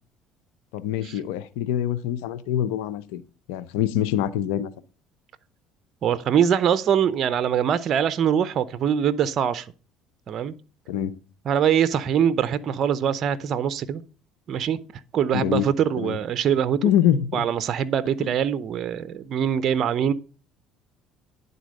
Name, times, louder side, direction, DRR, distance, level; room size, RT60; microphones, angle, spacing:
voice 1, 0.7-3.2 3.5-4.7 10.9-11.1 15.3-15.7 16.0-16.2 16.8-17.4 18.2-18.3, left 11 dB, 85° left, 0.6 m, -24 dB
voice 2, 6.0-9.7 10.3-10.5 11.5-14.0 14.5-14.8 15.1-16.8 17.3-20.1, right 8 dB, 50° right, 0.6 m, -23 dB
10.5 x 4.1 x 6.3 m
supercardioid pair, 95°, 0 cm